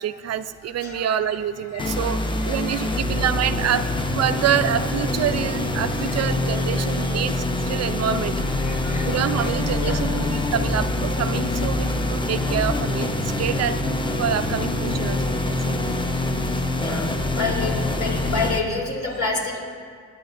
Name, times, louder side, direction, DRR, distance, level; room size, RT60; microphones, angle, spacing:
voice 1, 0.0-3.9 4.1-8.3 9.1-13.8 14.2-15.7, right 9 dB, 55° right, 11 dB, 0.5 m, -26 dB
voice 2, 1.7-2.1 2.7-2.9 5.9-6.1 8.6-9.2 9.7-10.1 15.5-15.6 16.7-19.6, left 3 dB, 70° left, -3 dB, 3.6 m, -29 dB
sound 1, 1.8-18.6, left 2 dB, 15° left, 0.8 m, -25 dB
24.5 x 9.0 x 2.6 m, 2.1 s
cardioid pair, 90°, 30 cm